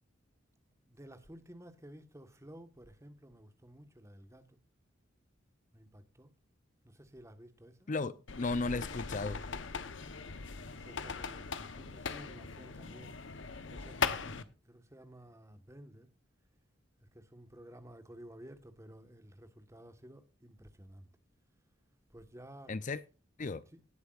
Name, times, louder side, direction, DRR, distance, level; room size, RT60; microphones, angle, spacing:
voice 1, 0.8-4.6 5.7-6.3 6.8-7.9 10.2-13.2 13.7-16.1 17.0-21.1 22.1-22.8 23.7-23.8, right 1 dB, 15° right, 1.4 m, -54 dB
voice 2, 7.9-9.4 22.7-23.0 23.4-23.6, left 3 dB, 40° left, 0.6 m, -35 dB
sound 1, 8.3-14.4, left 5 dB, 70° left, 1.0 m, -39 dB
18.5 x 8.1 x 2.5 m
head